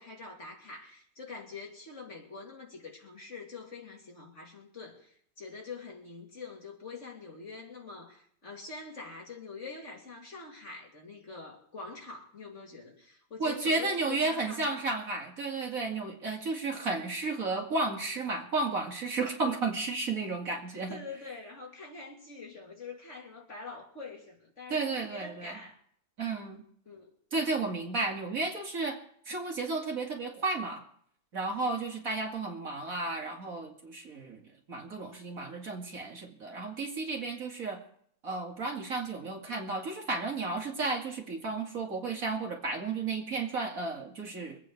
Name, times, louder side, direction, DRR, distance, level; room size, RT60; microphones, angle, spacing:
voice 1, 0.0-14.8 20.9-25.8 26.9-27.1, left 4 dB, 40° left, -1 dB, 2.9 m, -45 dB
voice 2, 13.4-21.0 24.7-25.6 26.2-26.6 27.3-29.0 29.3-30.8 31.3-34.4 34.7-37.8 38.2-44.6, right 3 dB, 50° right, 0 dB, 2.6 m, -33 dB
24.5 x 9.0 x 4.7 m, 0.63 s
omnidirectional pair, 1.9 m